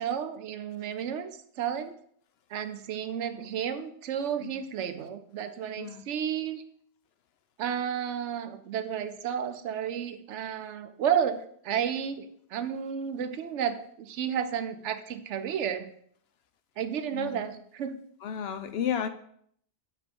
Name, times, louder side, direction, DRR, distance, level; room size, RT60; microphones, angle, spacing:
voice 1, 0.0-1.3 1.6-2.0 2.5-6.6 7.6-15.9 16.8-18.0, right 8 dB, 80° right, 10 dB, 0.9 m, -32 dB
voice 2, 17.1-17.5 18.2-19.1, left 8 dB, 65° left, 10 dB, 0.8 m, -33 dB
7.4 x 3.3 x 5.2 m, 0.66 s
omnidirectional pair, 1.2 m